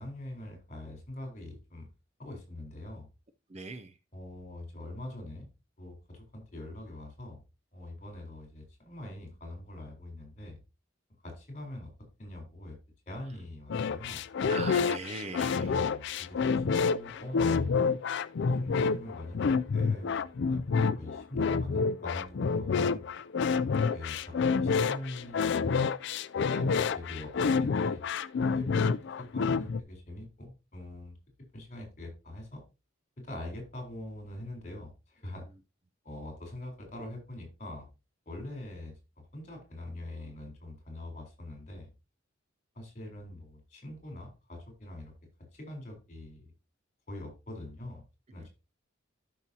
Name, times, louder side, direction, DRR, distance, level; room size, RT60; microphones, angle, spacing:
voice 1, 0.0-1.9 2.2-3.1 4.1-5.5 5.8-7.4 7.7-10.6 11.2-11.9 12.2-12.8 13.1-14.2 15.5-17.9 18.5-23.1 23.7-25.9 26.3-28.0 28.5-28.9 29.2-31.2 31.5-32.6 33.2-35.4 36.0-37.9 38.3-38.9 39.3-41.9 42.7-45.1 45.5-46.5 47.1-48.0 48.3-48.5, left 1 dB, 35° left, 4.1 m, -43 dB
voice 2, 3.5-3.9 14.5-15.7 23.5-23.9 48.4-48.5, right 3 dB, 30° right, 0.6 m, -40 dB
sound 1, 13.7-29.8, left 5 dB, 60° left, 0.4 m, -28 dB
12.0 x 5.9 x 2.8 m
head